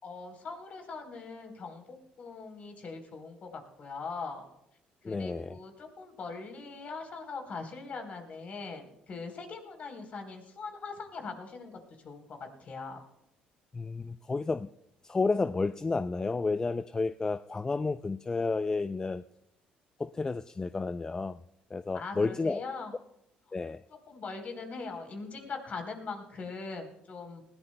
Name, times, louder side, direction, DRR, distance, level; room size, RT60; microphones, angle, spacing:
voice 1, 0.0-4.5 5.0-11.8 12.0-13.0 21.9-22.9 24.1-27.5, left 4 dB, 45° left, 5 dB, 3.8 m, -41 dB
voice 2, 5.0-5.6 13.7-14.7 15.0-19.2 20.0-21.4 21.7-22.6 23.5-23.8, left 3 dB, 20° left, 13 dB, 0.4 m, -31 dB
20.0 x 17.0 x 2.2 m, 0.82 s
cardioid pair, 95°, 3 cm